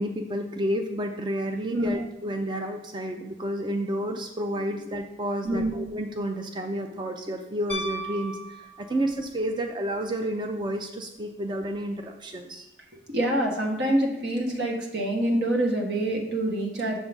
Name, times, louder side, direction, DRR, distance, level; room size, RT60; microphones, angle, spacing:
voice 1, 0.0-12.7, right 1 dB, 25° right, 4 dB, 0.4 m, -30 dB
Piano, 7.7-9.3 11.6-11.7, right 1 dB, 10° left, 0.9 m, -36 dB
voice 2, 13.1-17.0, right 1 dB, 75° right, 1 dB, 1.4 m, -26 dB
7.3 x 3.9 x 5.9 m, 0.89 s
head